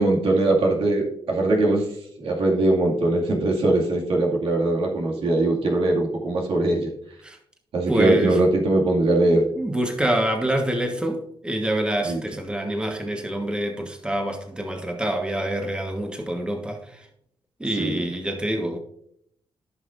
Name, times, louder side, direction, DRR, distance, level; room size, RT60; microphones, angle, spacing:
voice 1, 0.0-1.9 2.2-6.9 7.7-9.5 12.0-12.2 17.7-18.0, right 2 dB, 80° right, 2.2 m, -21 dB
voice 2, 7.9-8.3 9.6-16.8 17.6-18.8, right 1 dB, 10° right, 1.4 m, -26 dB
14.5 x 5.7 x 2.6 m
cardioid pair, 90°, 9 cm